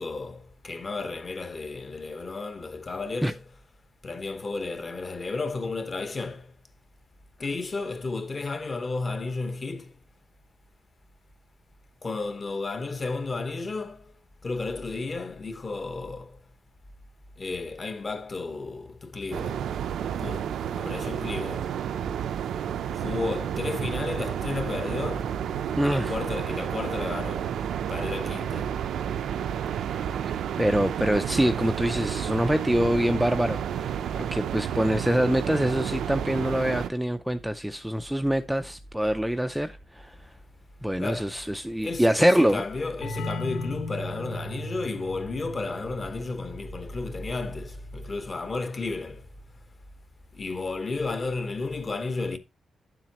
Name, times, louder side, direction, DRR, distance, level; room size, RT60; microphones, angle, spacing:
voice 1, 0.0-3.4 4.0-6.5 7.4-9.9 12.0-14.1 14.4-16.4 17.4-19.7 20.2-21.7 23.0-25.4 25.8-27.5 27.9-28.8 40.9-41.4 41.8-49.3 50.3-52.4, left 3 dB, 30° left, 1.1 m, -33 dB
sound 1, 19.3-36.9, right 9 dB, 80° right, 0.6 m, -31 dB
voice 2, 25.8-26.1 30.6-40.1 40.8-42.6, equal, 5° right, 0.4 m, -25 dB
sound 2, 43.0-48.5, left 1 dB, 75° left, 1.2 m, -38 dB
10.0 x 7.4 x 2.9 m
wide cardioid pair, 140°, 0 cm